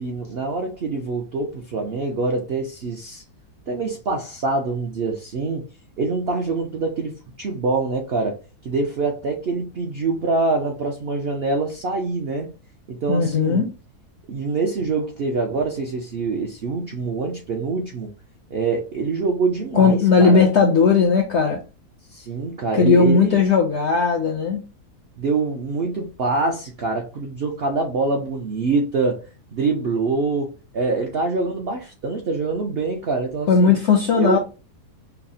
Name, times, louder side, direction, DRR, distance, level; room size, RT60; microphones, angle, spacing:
voice 1, 0.0-3.2 3.7-5.6 6.0-8.4 8.6-12.5 12.9-13.7 14.3-18.1 18.5-20.5 22.1-23.4 25.2-29.2 29.5-33.7 34.2-34.4, right 3 dB, 65° right, 0.6 m, -25 dB
voice 2, 13.1-13.7 19.7-21.6 22.7-24.6 33.5-34.4, left 5 dB, 70° left, 0.6 m, -17 dB
5.5 x 2.0 x 2.6 m
omnidirectional pair, 1.7 m